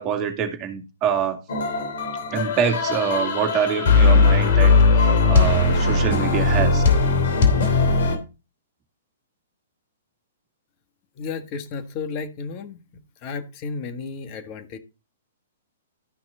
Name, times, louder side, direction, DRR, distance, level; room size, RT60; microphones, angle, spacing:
voice 1, 0.0-1.4 2.3-6.8, right 8 dB, 30° right, 2.3 m, -25 dB
sound 1, 1.5-8.2, left 3 dB, 55° left, 2.9 m, -18 dB
voice 2, 11.2-12.8 13.2-14.8, left 5 dB, 35° left, 1.7 m, -33 dB
13.0 x 6.0 x 3.9 m
figure-of-eight pair, 115°, 0 cm